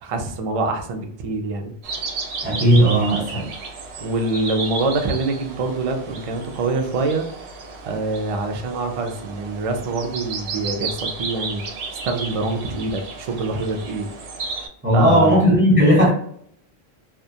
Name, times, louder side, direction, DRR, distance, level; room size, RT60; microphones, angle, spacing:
voice 1, 0.0-1.7 4.0-7.3 7.8-11.6 12.0-14.1 14.9-15.4, right 3 dB, 55° right, 4 dB, 0.4 m, -25 dB
sound 1, 1.8-14.7, right 4 dB, 85° right, 0.9 m, -33 dB
voice 2, 2.4-3.5 14.8-16.1, equal, 10° right, -6 dB, 0.8 m, -16 dB
2.3 x 2.1 x 2.7 m, 0.63 s
omnidirectional pair, 1.1 m